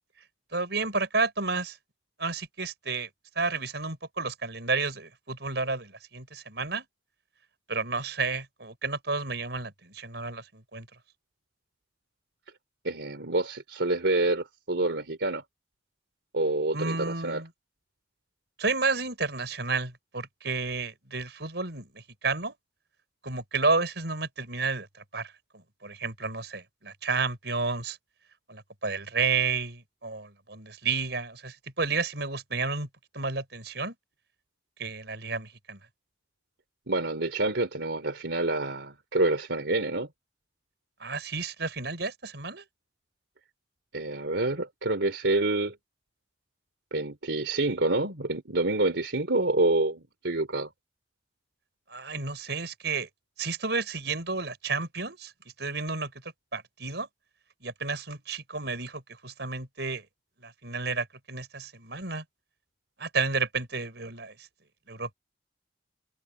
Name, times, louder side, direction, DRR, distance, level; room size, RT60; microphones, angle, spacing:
voice 1, 0.5-1.8 2.2-3.1 3.4-6.9 7.7-10.9 16.7-17.5 18.6-22.5 23.2-24.9 25.1-28.0 28.5-32.9 33.1-33.9 34.8-35.8 41.0-42.6 51.9-53.1 53.4-55.3 55.6-56.1 56.5-57.1 57.6-60.0 60.4-62.2 63.0-64.3 64.9-65.1, right 4 dB, 70° right, 5.3 m, -31 dB
voice 2, 12.8-15.4 16.3-17.4 36.9-40.1 43.9-45.7 46.9-50.7, right 2 dB, 85° right, 3.2 m, -27 dB
head